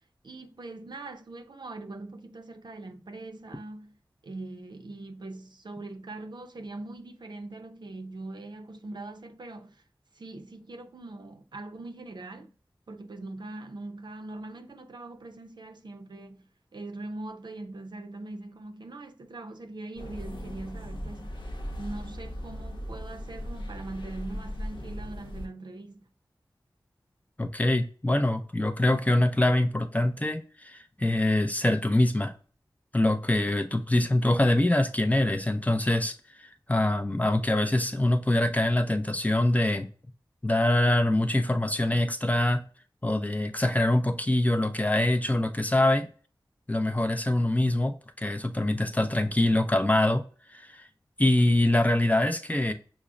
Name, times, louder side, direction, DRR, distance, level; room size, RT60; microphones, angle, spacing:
voice 1, 0.2-4.0 4.2-9.8 10.1-12.5 12.9-21.4 21.8-26.1, right 2 dB, 65° right, 0.5 m, -41 dB
sound 1, 20.0-25.5, equal, 80° left, 0.8 m, -38 dB
voice 2, 27.4-32.3 32.9-36.1 36.7-39.9 40.4-42.6 43.0-46.1 46.7-50.2 50.5-50.9 51.2-52.7, left 1 dB, 20° left, 0.4 m, -24 dB
6.0 x 2.0 x 2.4 m
wide cardioid pair, 65°, 8 cm